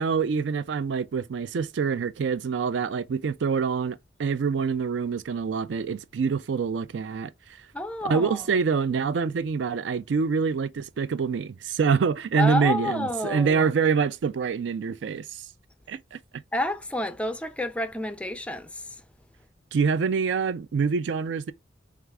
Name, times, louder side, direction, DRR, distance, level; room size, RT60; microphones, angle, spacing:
voice 1, 0.0-7.3 8.0-15.3 15.9-16.2 19.7-21.5, right 5 dB, 70° right, 0.4 m, -26 dB
voice 2, 7.7-8.6 12.4-13.7 16.5-18.8, left 1 dB, 5° left, 0.4 m, -29 dB
4.5 x 2.4 x 3.5 m
head